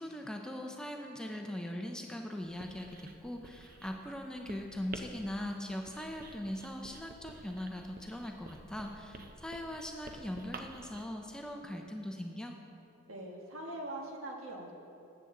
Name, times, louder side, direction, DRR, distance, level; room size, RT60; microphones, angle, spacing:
voice 1, 0.0-12.6, left 1 dB, 5° left, 2 dB, 0.5 m, -40 dB
Writing, 2.4-11.0, right 2 dB, 40° right, 0.6 m, -51 dB
voice 2, 13.1-14.7, right 1 dB, 75° right, 0 dB, 1.4 m, -42 dB
13.5 x 7.9 x 3.8 m, 2.7 s
head